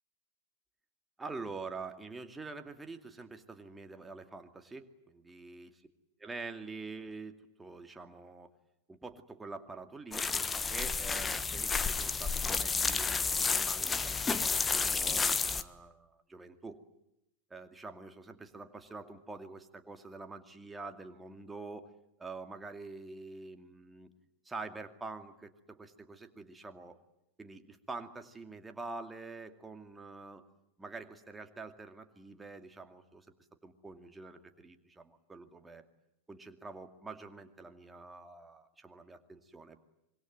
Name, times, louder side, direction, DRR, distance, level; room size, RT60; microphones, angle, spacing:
voice 1, 1.2-5.8 6.2-8.5 8.9-10.3 10.7-16.8 17.5-21.9 22.2-24.1 24.4-27.0 27.4-30.5 30.8-33.3 33.6-35.8 36.3-39.8, right 3 dB, 10° right, 6 dB, 2.4 m, -46 dB
sound 1, 10.1-15.6, left 4 dB, 15° left, 1.2 m, -31 dB
26.0 x 23.5 x 9.3 m, 0.85 s
figure-of-eight pair, 90°, 0 cm